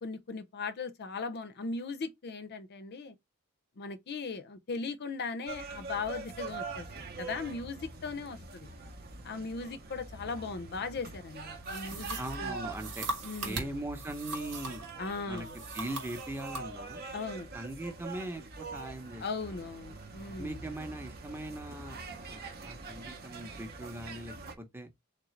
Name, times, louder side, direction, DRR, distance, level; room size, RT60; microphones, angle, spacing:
voice 1, 0.0-3.1 3.8-6.9 7.2-8.7 9.2-12.6 13.2-13.7 15.0-15.6 17.1-17.5 19.2-20.6, left 4 dB, 50° left, 0.5 m, -38 dB
sound 1, 5.5-24.6, right 3 dB, 45° right, 0.8 m, -44 dB
sound 2, 11.6-14.9 15.4-16.7, right 3 dB, 75° right, 1.5 m, -40 dB
voice 2, 12.2-13.1 13.4-14.9 15.3-15.5 15.7-17.0 17.5-19.6 20.4-22.0 22.3-24.9, right 1 dB, 10° right, 0.7 m, -40 dB
3.7 x 3.2 x 3.0 m
head